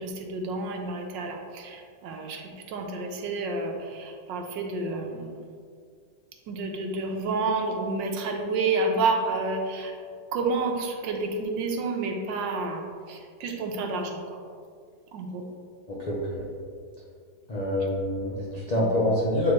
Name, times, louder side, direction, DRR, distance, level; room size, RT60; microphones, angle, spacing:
voice 1, 0.0-5.4 6.5-9.9 10.3-14.4 15.1-15.5 18.7-19.1, right 3 dB, 90° right, 2 dB, 1.4 m, -30 dB
voice 2, 15.9-16.4 17.5-19.5, left 1 dB, 75° left, -6 dB, 0.3 m, -26 dB
7.4 x 4.2 x 3.1 m, 2.1 s
omnidirectional pair, 1.9 m